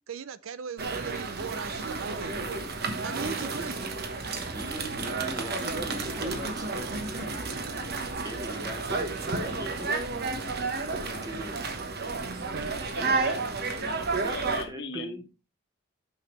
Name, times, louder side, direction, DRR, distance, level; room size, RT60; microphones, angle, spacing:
voice 1, 0.1-2.3 3.0-3.7 12.3-12.9, right 6 dB, 75° right, 0.5 m, -38 dB
sound 1, 0.8-14.6, right 3 dB, 50° right, 1.1 m, -31 dB
voice 2, 3.2-3.7 4.5-7.3 8.2-9.9 10.9-11.6 13.0-13.4 14.2-14.4 14.7-15.2, equal, 20° right, 1.1 m, -40 dB
voice 3, 12.9-13.4 13.7-15.3, left 3 dB, 60° left, 1.4 m, -40 dB
9.2 x 6.1 x 3.2 m
head